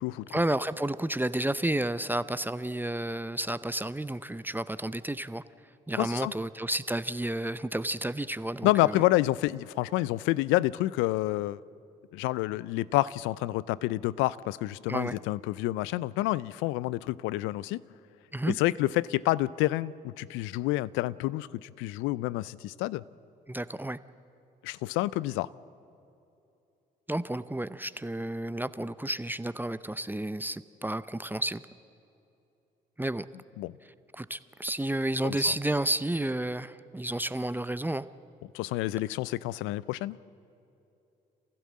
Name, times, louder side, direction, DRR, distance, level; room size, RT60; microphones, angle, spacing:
voice 1, 0.3-5.4 5.9-9.0 14.9-15.2 18.3-18.6 23.5-24.0 27.1-31.6 33.0-33.2 34.1-38.1, right 1 dB, 10° right, 14 dB, 0.7 m, -31 dB
voice 2, 6.0-6.3 8.6-11.6 12.1-17.8 18.6-23.0 24.6-25.5 33.6-33.7 35.2-35.4 38.5-40.2, left 17 dB, 75° left, 21 dB, 0.5 m, -28 dB
27.5 x 15.5 x 7.5 m, 2.8 s
hypercardioid pair, 50°, 20 cm